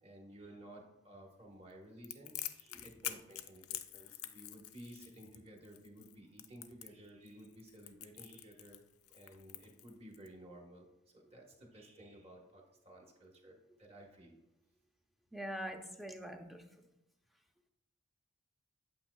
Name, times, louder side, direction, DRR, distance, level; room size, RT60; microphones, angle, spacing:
voice 1, 0.0-8.8 9.1-10.9 11.1-14.3, right 1 dB, 25° right, 0 dB, 1.2 m, -55 dB
Crackle, 2.0-10.3, left 13 dB, 80° left, 0.5 m, -46 dB
voice 2, 15.3-16.9, equal, ahead, 3 dB, 0.5 m, -44 dB
8.6 x 7.9 x 2.3 m, 0.92 s
head